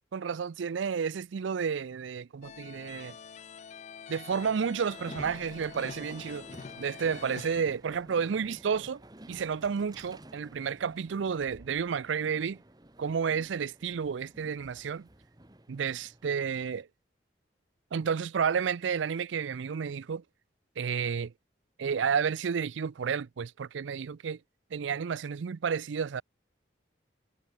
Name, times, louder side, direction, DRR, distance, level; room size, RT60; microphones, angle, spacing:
voice 1, 0.1-3.2 4.1-6.5 6.8-9.0 9.3-12.6 13.0-15.1 15.7-16.9 17.9-20.2 20.8-21.3 21.8-24.4 24.7-26.2, right 6 dB, 80° right, 0.4 m, -31 dB
sound 1, 2.4-7.6, left 6 dB, 35° left, 0.3 m, -45 dB
Train, 4.3-16.8, right 1 dB, 20° right, 1.1 m, -52 dB
head